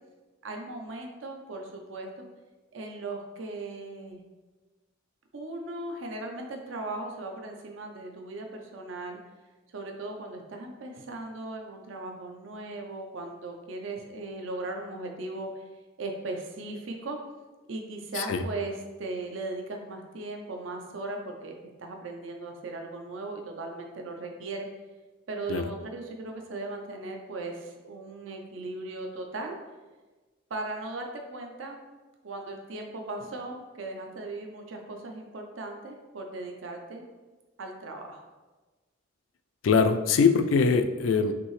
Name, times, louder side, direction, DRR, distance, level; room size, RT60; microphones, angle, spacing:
voice 1, 0.4-2.2 2.7-4.2 5.3-9.2 9.7-15.6 16.0-17.2 17.7-21.5 21.8-24.7 25.3-29.6 30.5-31.8 32.2-37.0 37.6-38.3, right 2 dB, 75° right, 3 dB, 0.6 m, -38 dB
voice 2, 39.6-41.3, left 5 dB, 85° left, 9 dB, 0.4 m, -22 dB
6.0 x 2.7 x 3.1 m, 1.2 s
head